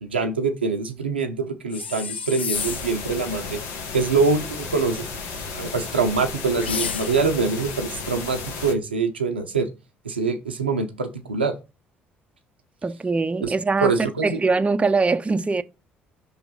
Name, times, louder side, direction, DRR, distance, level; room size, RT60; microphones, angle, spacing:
voice 1, 0.0-3.6 3.9-5.1 5.5-9.7 10.0-11.5 13.4-13.5 13.8-14.4, right 4 dB, 90° right, 0.8 m, -24 dB
sound 1, 1.7-3.1 6.6-7.4, left 7 dB, 85° left, 0.4 m, -30 dB
sound 2, 2.5-8.7, left 4 dB, 70° left, 1.5 m, -34 dB
voice 2, 12.8-13.9 14.2-15.6, right 3 dB, 20° right, 0.7 m, -22 dB
5.8 x 3.9 x 5.6 m
figure-of-eight pair, 50°, 6 cm